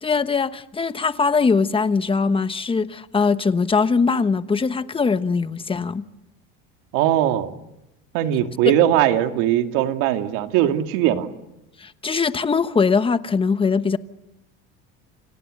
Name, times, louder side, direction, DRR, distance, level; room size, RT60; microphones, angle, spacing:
voice 1, 0.0-6.0 8.7-8.8 11.8-14.0, left 5 dB, 15° left, 1.1 m, -21 dB
voice 2, 6.9-7.5 8.1-11.3, right 12 dB, 75° right, 2.6 m, -20 dB
29.5 x 27.0 x 6.7 m
cardioid pair, 125°, 30 cm